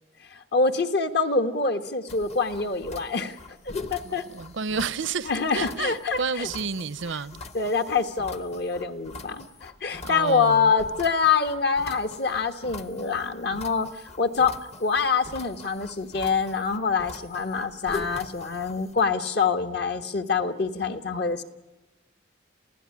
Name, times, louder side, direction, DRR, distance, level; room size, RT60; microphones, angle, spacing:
voice 1, 0.3-3.4 3.9-4.2 5.3-6.5 7.5-13.9 14.2-21.4, left 5 dB, 55° left, 1.3 m, -25 dB
sound 1, 2.1-19.0, left 3 dB, 35° left, 0.9 m, -43 dB
voice 2, 4.0-7.3 10.0-10.7, right 5 dB, 75° right, 0.7 m, -30 dB
28.0 x 16.0 x 9.7 m
head